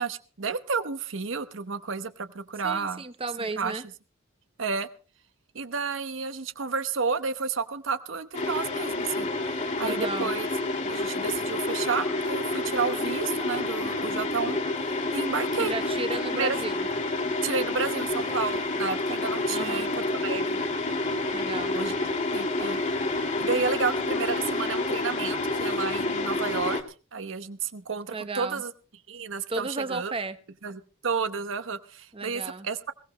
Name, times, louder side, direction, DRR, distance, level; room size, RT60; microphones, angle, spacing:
voice 1, 0.0-3.0 3.4-3.8 4.6-4.9 5.5-9.3 9.8-10.5 10.8-15.7 16.3-16.6 17.4-20.6 21.7-21.9 22.3-22.8 23.4-26.8 27.1-28.7 29.1-30.1 30.6-32.9, right 5 dB, 70° right, 11 dB, 1.0 m, -31 dB
voice 2, 2.6-3.8 9.8-10.3 15.6-16.9 19.5-19.9 21.3-21.7 28.1-28.6 29.5-30.4 32.1-32.7, right 3 dB, 25° right, 12 dB, 0.9 m, -34 dB
sound 1, 8.3-26.8, left 2 dB, 35° left, 1.9 m, -29 dB
21.5 x 17.0 x 3.1 m, 0.36 s
head